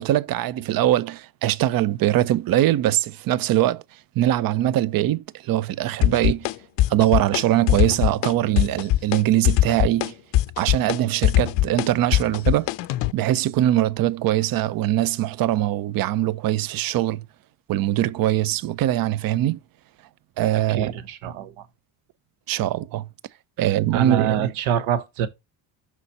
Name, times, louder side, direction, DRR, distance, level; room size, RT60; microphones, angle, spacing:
voice 1, 0.0-3.8 4.2-6.5 6.9-10.1 10.6-12.7 13.1-17.2 17.7-19.6 20.4-20.9 22.5-23.1 23.6-24.5, right 13 dB, 45° right, 0.5 m, -22 dB
sound 1, 6.0-6.5 6.8-7.4 7.7-8.3 8.6-9.2 9.4-13.1, left 15 dB, 60° left, 0.5 m, -20 dB
voice 2, 20.7-21.7 23.6-23.7 23.9-25.3, right 9 dB, 75° right, 0.9 m, -25 dB
6.0 x 4.0 x 4.2 m
supercardioid pair, 65°, 49 cm